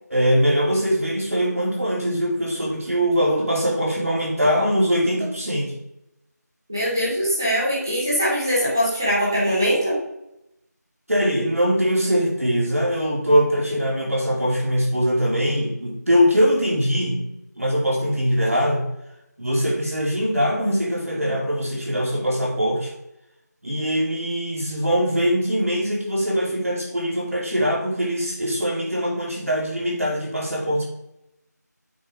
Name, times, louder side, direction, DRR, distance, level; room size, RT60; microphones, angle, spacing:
voice 1, 0.1-5.7 11.1-17.2 17.5-18.8 19.4-22.9 23.6-30.9, equal, 55° right, -3 dB, 3.4 m, -22 dB
voice 2, 6.7-10.0, equal, 10° right, -7 dB, 1.3 m, -22 dB
8.1 x 4.9 x 5.2 m, 0.84 s
figure-of-eight pair, 175°, 10 cm